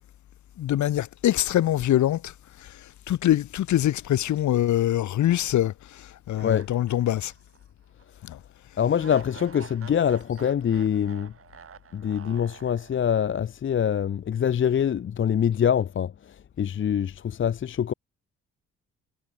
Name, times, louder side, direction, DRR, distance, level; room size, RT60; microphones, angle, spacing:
voice 1, 0.6-2.3 2.6-2.7 3.1-7.3 8.3-8.4, left 12 dB, 70° left, 1.6 m, -24 dB
sound 1, 6.4-7.6 8.0-8.1 9.0-13.3, right 7 dB, 50° right, 5.7 m, -47 dB
voice 2, 8.8-11.3 11.9-17.9, left 8 dB, 40° left, 0.8 m, -25 dB
cardioid pair, 90°, 30 cm